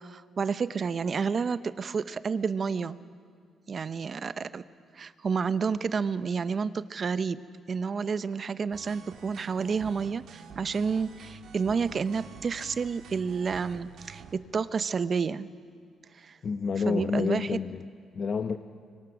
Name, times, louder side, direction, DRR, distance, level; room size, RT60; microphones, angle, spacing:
voice 1, 0.0-3.0 3.7-4.6 4.9-7.4 7.7-15.5 16.1-16.4 16.9-17.6, right 5 dB, 45° right, 15 dB, 0.7 m, -30 dB
sound 1, 8.7-14.4, right 7 dB, 75° right, 1.8 m, -48 dB
voice 2, 16.4-17.9 18.1-18.6, left 5 dB, 45° left, 7 dB, 0.7 m, -29 dB
25.0 x 23.0 x 6.0 m, 2.2 s
cardioid pair, 90°, 0 cm